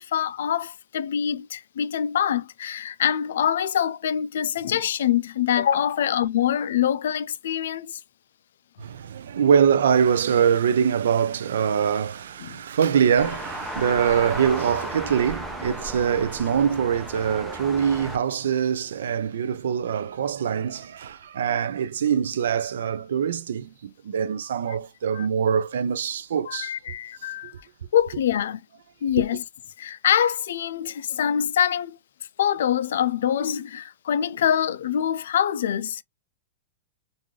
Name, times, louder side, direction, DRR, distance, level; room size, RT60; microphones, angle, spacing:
voice 1, 0.0-8.0 12.4-12.6 25.1-25.3 26.5-27.5 27.9-28.6 29.0-29.4 29.8-32.0 32.4-36.0, left 9 dB, 80° left, 0.3 m, -24 dB
voice 2, 8.8-26.7, right 7 dB, 85° right, 0.4 m, -23 dB
sound 1, 13.2-18.2, right 1 dB, 5° right, 0.6 m, -35 dB
3.7 x 2.5 x 3.1 m
supercardioid pair, 160°, 0 cm